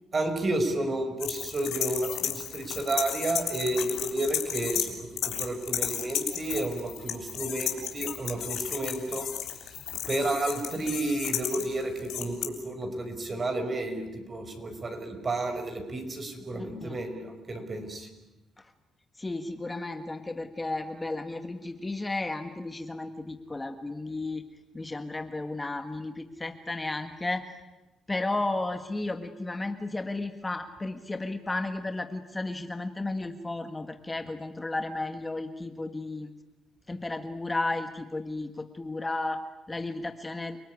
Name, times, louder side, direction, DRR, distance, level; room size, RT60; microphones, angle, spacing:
voice 1, 0.1-9.3 10.1-18.1, right 2 dB, 35° right, 6 dB, 5.8 m, -31 dB
sound 1, 1.2-4.9 5.2-12.4, left 10 dB, 80° left, 3.7 m, -33 dB
voice 2, 16.6-17.0 19.2-24.4 24.7-27.4 28.1-36.3 36.9-40.6, left 2 dB, 20° left, 8 dB, 1.6 m, -33 dB
29.5 x 19.5 x 9.7 m, 1.1 s
cardioid pair, 90°, 0 cm